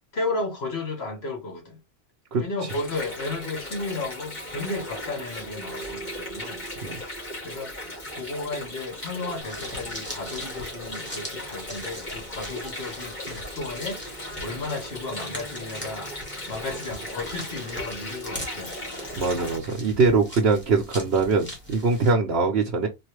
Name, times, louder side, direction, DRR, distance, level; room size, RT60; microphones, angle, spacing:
voice 1, 0.1-1.8 2.4-16.1 16.5-18.8 19.1-19.4, left 3 dB, 70° left, 1.5 m, -34 dB
Water, 2.7-19.6, left 1 dB, 40° left, 2.1 m, -37 dB
sound 1, 9.4-22.1, equal, 10° left, 1.6 m, -41 dB
voice 2, 19.1-22.9, right 4 dB, 70° right, 1.0 m, -22 dB
4.1 x 2.7 x 3.1 m
omnidirectional pair, 1.1 m